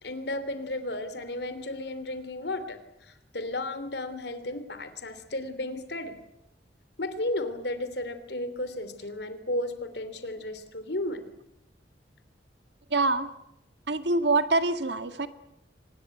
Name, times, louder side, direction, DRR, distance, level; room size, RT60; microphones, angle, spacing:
voice 1, 0.0-6.2 7.0-11.3, left 1 dB, 65° left, 11 dB, 3.1 m, -34 dB
voice 2, 12.9-13.3 13.9-15.3, right 3 dB, 70° right, 10 dB, 1.9 m, -25 dB
25.0 x 20.5 x 9.2 m, 0.84 s
head